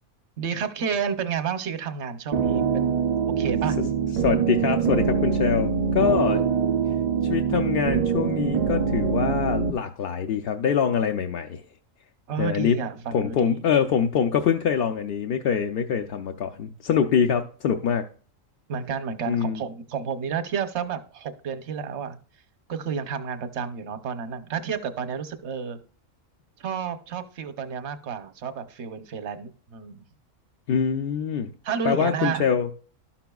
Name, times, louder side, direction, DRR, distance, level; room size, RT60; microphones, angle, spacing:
voice 1, 0.4-3.0 3.4-3.8 12.3-13.6 18.7-22.2 22.7-25.8 26.6-30.0 31.6-32.4, right 6 dB, 65° right, 1.0 m, -31 dB
sound 1, 2.3-9.7, right 6 dB, 80° right, 0.3 m, -24 dB
voice 2, 4.2-6.4 7.3-11.6 12.4-12.8 13.1-18.0 19.3-19.6 30.7-31.5 31.8-32.7, left 7 dB, 60° left, 0.7 m, -24 dB
12.5 x 5.9 x 2.3 m
omnidirectional pair, 1.3 m